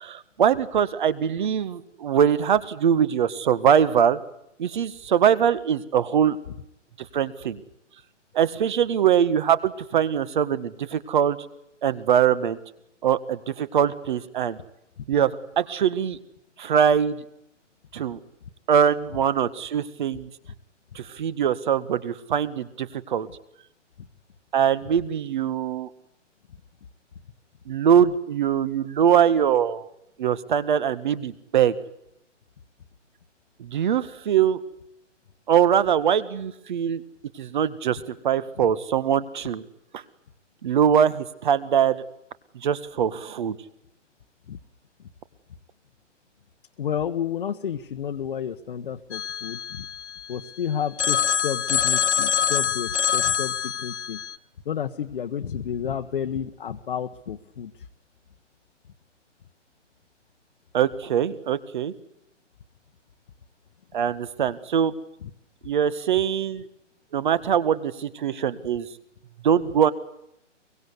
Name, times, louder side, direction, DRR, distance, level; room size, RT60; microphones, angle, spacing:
voice 1, 0.0-4.2 4.6-6.4 7.1-7.6 8.3-11.4 11.8-12.6 13.0-14.6 15.1-16.2 16.6-17.2 17.9-18.2 18.7-20.3 21.0-23.3 24.5-25.9 27.7-29.9 30.2-31.8 33.6-34.6 35.5-37.0 37.4-39.6 39.9-40.0 40.6-42.0 42.6-43.6 60.7-61.9 63.9-64.9 65.6-66.6 67.1-68.9 69.4-69.9, right 8 dB, 40° right, 16 dB, 1.8 m, -22 dB
voice 2, 46.8-49.9 50.3-54.2 54.6-57.7, left 8 dB, 45° left, 4 dB, 1.3 m, -31 dB
Telephone, 49.1-50.5 51.0-54.4, left 8 dB, 65° left, 1.4 m, -25 dB
24.0 x 23.5 x 8.3 m, 0.79 s
hypercardioid pair, 160°, 37 cm